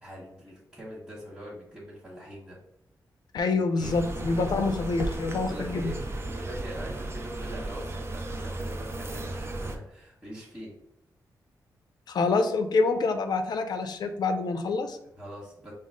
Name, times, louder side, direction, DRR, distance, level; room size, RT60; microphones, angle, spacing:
voice 1, 0.0-2.6 3.5-3.9 5.3-6.0 6.2-10.7 15.2-15.7, equal, 5° right, -9 dB, 1.4 m, -43 dB
voice 2, 3.3-5.9 12.1-15.0, left 3 dB, 70° left, 7 dB, 0.6 m, -26 dB
sound 1, 3.8-9.8, right 2 dB, 35° right, 0.6 m, -35 dB
5.3 x 2.0 x 3.7 m, 0.78 s
wide cardioid pair, 100°, 7 cm